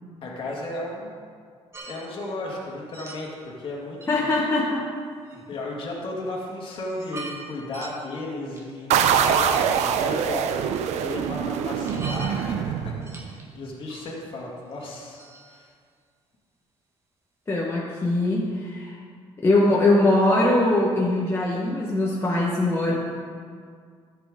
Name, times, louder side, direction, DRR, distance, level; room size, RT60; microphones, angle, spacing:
voice 1, 0.2-1.3 1.8-4.0 5.3-15.7, left 2 dB, 50° left, -2 dB, 2.0 m, -35 dB
sound 1, 1.7-2.0 2.9-3.4 4.0-4.1 5.2-5.4 6.3-6.4 6.8-7.4 7.7-8.0 8.6-9.0 9.7-10.1 11.9-12.3 13.0-13.4 13.9-14.1 14.7-14.9 15.2-15.7, right 3 dB, 25° right, 1.6 m, -41 dB
voice 2, 4.1-4.9 17.5-19.0 19.4-22.9, left 2 dB, 25° left, -4 dB, 1.2 m, -22 dB
sound 2, 8.9-13.4, right 8 dB, 85° right, 0.6 m, -24 dB
13.5 x 7.9 x 3.7 m, 2.1 s
cardioid pair, 130°, 11 cm